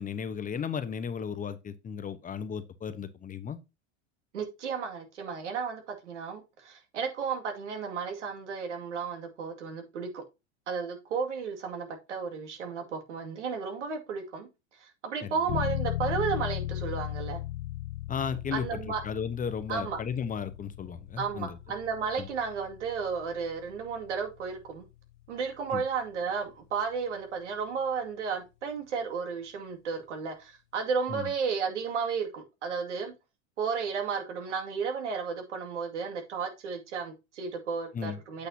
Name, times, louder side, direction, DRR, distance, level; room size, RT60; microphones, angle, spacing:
voice 1, 0.0-3.6 15.2-15.6 18.1-18.8 19.0-21.6 22.2-22.3 25.7-25.8 31.1-31.3 37.9-38.2, left 7 dB, 25° left, 1.0 m, -35 dB
voice 2, 4.3-10.2 10.7-14.5 14.8-17.4 18.5-19.0 19.7-20.0 21.2-24.8 25.3-33.1 33.6-38.5, right 5 dB, 85° right, 2.3 m, -33 dB
sound 1, 15.5-26.0, left 15 dB, 90° left, 0.5 m, -37 dB
8.5 x 6.6 x 2.8 m
hypercardioid pair, 100°, 35 cm